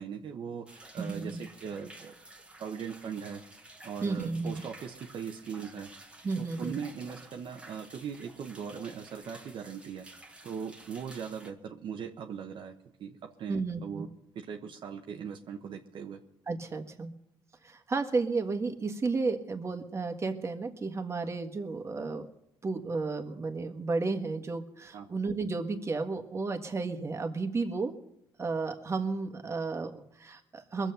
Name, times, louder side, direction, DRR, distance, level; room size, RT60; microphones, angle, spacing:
voice 1, 0.0-2.1 2.6-3.4 3.8-5.9 6.4-10.0 10.4-14.1 14.3-16.2 24.9-25.1, right 7 dB, 60° right, 3 dB, 1.1 m, -40 dB
sound 1, 0.7-11.5, right 2 dB, 10° right, 1.5 m, -52 dB
voice 2, 1.0-1.4 4.0-4.6 6.2-6.8 13.5-14.1 16.5-17.1 17.6-22.3 22.6-27.9 28.4-30.9, right 3 dB, 30° right, 5 dB, 1.7 m, -33 dB
21.5 x 7.3 x 6.9 m, 0.80 s
cardioid pair, 90°, 9 cm